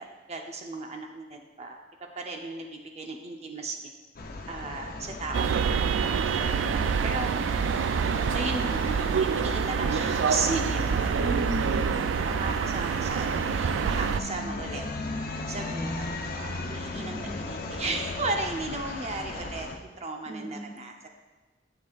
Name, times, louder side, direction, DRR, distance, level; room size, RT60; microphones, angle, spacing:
voice 1, 0.0-1.8 2.2-3.9 4.5-5.7 6.0-7.3 8.3-8.8 9.2-11.3 12.2-14.9 15.5-21.1, right 3 dB, 35° right, 2 dB, 0.7 m, -35 dB
sound 1, 4.2-19.8, left 2 dB, 55° left, 0.7 m, -36 dB
sound 2, 5.3-14.2, right 6 dB, 90° right, 0.3 m, -26 dB
voice 2, 11.1-12.1 16.9-17.4 20.3-20.7, equal, 10° left, 0 dB, 0.9 m, -36 dB
12.0 x 7.9 x 2.4 m, 1.2 s
head